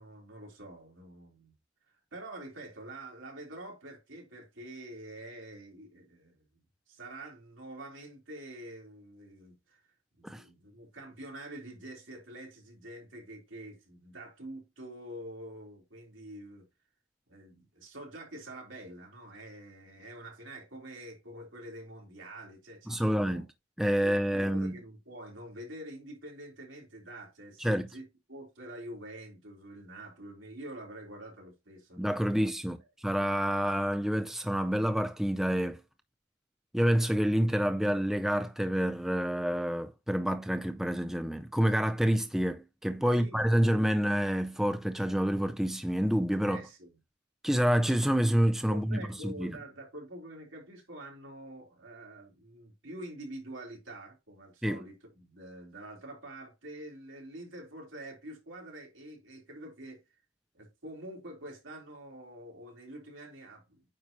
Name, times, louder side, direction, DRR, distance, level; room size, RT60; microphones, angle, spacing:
voice 1, 0.0-1.5 1.9-6.4 6.9-9.8 10.2-16.6 17.3-23.4 24.0-28.0 28.3-32.5 43.1-43.7 46.5-46.9 48.7-60.0 60.5-63.8, right 1 dB, 80° right, 3.5 m, -46 dB
voice 2, 22.9-23.4 23.8-24.8 27.6-27.9 32.0-35.8 36.7-46.6 47.4-49.6 54.6-54.8, equal, ahead, 0.4 m, -28 dB
9.1 x 5.3 x 2.9 m
head